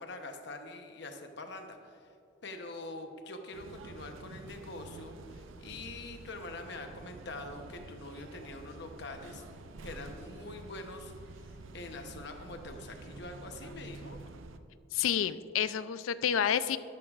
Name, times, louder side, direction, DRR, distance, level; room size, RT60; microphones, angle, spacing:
voice 1, 0.0-2.1 2.4-9.4 9.8-11.1 11.7-14.2, left 2 dB, 60° left, 5 dB, 0.9 m, -44 dB
sound 1, 3.5-14.6, right 3 dB, 80° right, 0.5 m, -49 dB
voice 2, 14.9-16.8, left 9 dB, 90° left, 14 dB, 0.4 m, -29 dB
13.0 x 11.5 x 2.4 m, 2.6 s
head